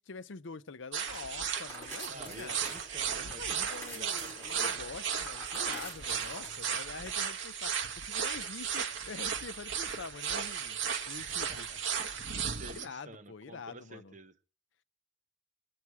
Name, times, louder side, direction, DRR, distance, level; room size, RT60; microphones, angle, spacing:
voice 1, 0.0-2.6 3.2-7.7 8.0-10.8 11.1-11.7 12.7-14.1, left 4 dB, 65° left, 0.6 m, -45 dB
sound 1, 0.9-12.9, right 7 dB, 65° right, 1.2 m, -35 dB
sound 2, 1.0-7.1, equal, 10° left, 4.4 m, -48 dB
voice 2, 2.1-4.9 11.2-11.8 12.5-14.3, right 2 dB, 35° right, 0.9 m, -49 dB
20.5 x 8.6 x 4.7 m
head